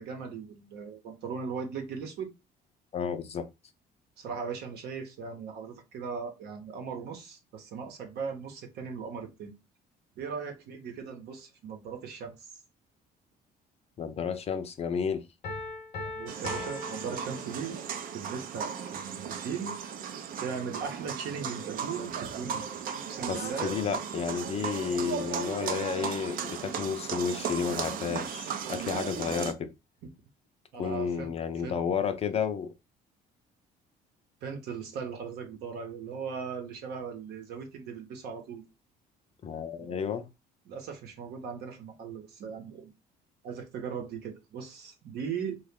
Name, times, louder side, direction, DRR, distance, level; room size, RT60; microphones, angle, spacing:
voice 1, 0.0-2.3 4.2-9.5 10.2-12.5 16.0-17.8 18.1-19.8 20.4-22.7 23.1-23.8 30.7-31.8 34.4-38.6 39.8-40.0 40.7-42.9 43.4-45.6, right 6 dB, 75° right, 0.9 m, -38 dB
voice 2, 2.9-3.5 14.0-15.2 23.3-29.7 30.8-32.7 39.4-40.3, left 6 dB, 40° left, 0.5 m, -32 dB
Piano, 15.4-18.0, left 3 dB, 65° left, 0.9 m, -40 dB
sound 1, 16.3-29.5, right 7 dB, 55° right, 0.5 m, -36 dB
2.9 x 2.3 x 3.5 m
cardioid pair, 110°, 17 cm